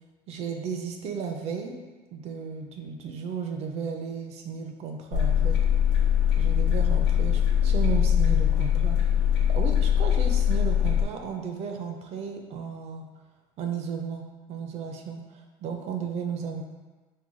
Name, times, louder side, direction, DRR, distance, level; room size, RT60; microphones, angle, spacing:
voice 1, 0.3-1.8 2.1-5.6 6.4-9.0 9.5-13.0 13.6-16.6, right 6 dB, 50° right, 4 dB, 0.5 m, -34 dB
sound 1, 5.1-11.0, left 9 dB, 80° left, 0.9 m, -22 dB
4.7 x 2.2 x 3.8 m, 1.3 s
cardioid pair, 150°, 14 cm